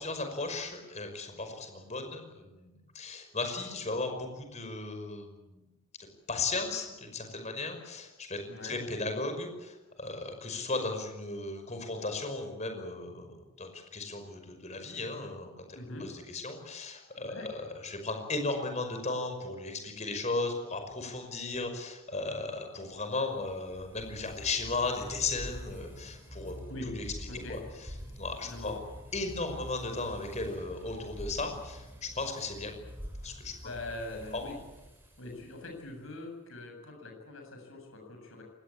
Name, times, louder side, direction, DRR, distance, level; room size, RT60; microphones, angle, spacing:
voice 1, 0.0-5.6 6.3-15.7 16.0-26.6 27.0-27.1 27.5-27.6 28.2-28.8 29.1-32.8 33.2-33.5 34.3-34.4, left 3 dB, 30° left, 6 dB, 5.5 m, -36 dB
voice 2, 15.7-16.1 17.2-17.5 26.7-26.9 27.3-27.6 28.4-28.7 33.6-34.6 35.2-38.4, left 2 dB, 70° left, 2 dB, 7.7 m, -42 dB
sound 1, 22.6-36.0, equal, 10° right, 6.9 m, -46 dB
25.0 x 20.5 x 8.6 m, 1.1 s
head